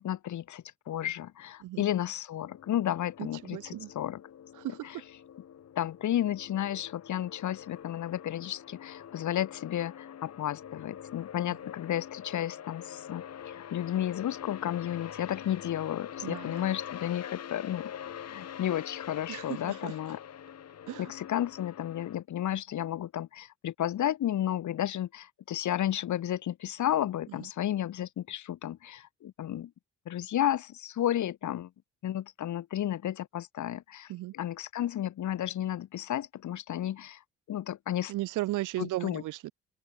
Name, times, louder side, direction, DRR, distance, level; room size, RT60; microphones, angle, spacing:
voice 1, 0.0-4.2 4.8-5.0 5.8-17.9 18.3-20.2 21.0-29.7 30.1-31.7 32.0-37.2 37.5-38.1 38.8-39.2, left 11 dB, 70° left, 5.3 m, -32 dB
sound 1, 2.4-22.2, left 9 dB, 55° left, 2.8 m, -45 dB
voice 2, 3.2-3.9 4.6-4.9 16.2-16.6 19.3-19.9 20.9-21.1 34.1-34.3 38.1-39.5, right 16 dB, 90° right, 2.3 m, -36 dB
open air
cardioid pair, 90°, 30 cm